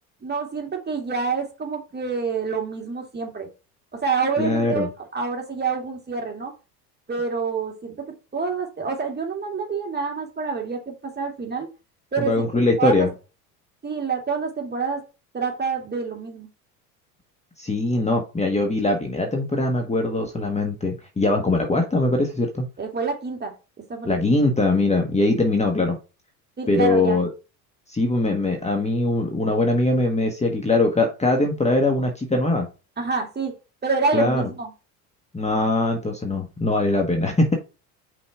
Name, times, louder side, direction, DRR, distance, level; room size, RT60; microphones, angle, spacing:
voice 1, 0.2-3.5 3.9-6.5 7.1-8.0 8.3-11.7 12.1-12.5 12.8-13.1 13.8-15.0 15.3-16.5 22.8-23.5 23.9-24.3 26.6-27.2 33.0-33.5 33.8-34.7, right 5 dB, 20° right, 2 dB, 2.2 m, -27 dB
voice 2, 4.4-4.9 12.2-13.1 17.6-22.7 24.0-26.0 26.7-27.3 27.9-32.7 34.1-34.5 35.3-37.5, left 2 dB, 15° left, 3 dB, 1.4 m, -21 dB
5.6 x 4.2 x 4.6 m, 0.30 s
hypercardioid pair, 80°, 45 cm